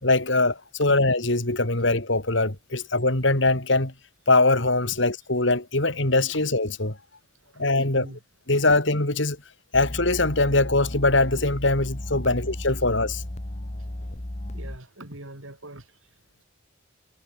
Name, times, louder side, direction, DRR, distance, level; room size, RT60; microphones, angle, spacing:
voice 1, 0.0-3.9 4.3-7.0 7.6-8.1 8.5-9.4 9.7-13.2, left 2 dB, 65° left, 3.1 m, -22 dB
voice 2, 7.5-8.2 14.5-15.9, right 1 dB, 80° right, 4.8 m, -43 dB
sound 1, 9.7-14.8, left 1 dB, 35° left, 1.5 m, -34 dB
head